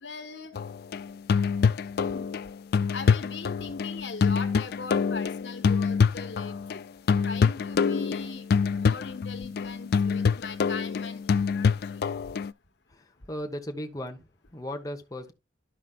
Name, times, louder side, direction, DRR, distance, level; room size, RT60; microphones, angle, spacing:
voice 1, 0.0-0.5 2.1-2.3 2.9-6.8 7.2-12.0, left 4 dB, 85° left, 1.3 m, -40 dB
sound 1, 0.6-6.8 7.1-12.5, left 5 dB, 60° left, 0.4 m, -25 dB
voice 2, 12.9-15.3, equal, 20° left, 1.1 m, -37 dB
12.5 x 5.1 x 2.4 m
head